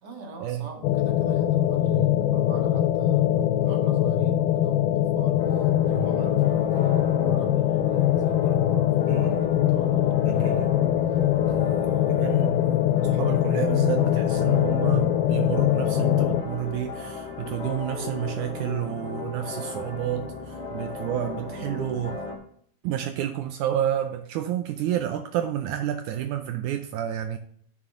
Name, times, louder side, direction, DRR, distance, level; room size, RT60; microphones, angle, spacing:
voice 1, 0.0-10.8 11.1-12.4, left 1 dB, 40° right, 1.7 m, -38 dB
sound 1, 0.8-16.4, left 12 dB, 85° left, 2.4 m, -22 dB
sound 2, 5.4-22.4, left 3 dB, 25° left, 1.6 m, -36 dB
voice 2, 9.1-9.4 10.2-10.7 12.1-12.6 13.0-22.2 22.8-27.4, right 11 dB, 90° right, 1.7 m, -30 dB
11.0 x 6.2 x 3.7 m
omnidirectional pair, 4.2 m